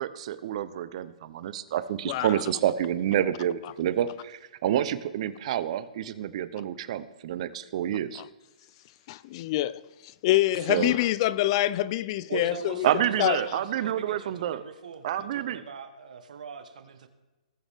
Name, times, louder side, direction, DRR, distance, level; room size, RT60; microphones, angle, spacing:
voice 1, 0.0-8.2 10.7-10.9 12.8-14.6 15.0-15.6, right 11 dB, 50° right, 0.7 m, -28 dB
voice 2, 2.1-2.4 8.2-8.3 9.1-9.8 10.2-12.9 13.2-13.4, left 15 dB, 40° left, 0.4 m, -25 dB
voice 3, 12.3-17.1, right 6 dB, 75° right, 1.4 m, -40 dB
19.5 x 7.2 x 3.6 m
hypercardioid pair, 140°, 4 cm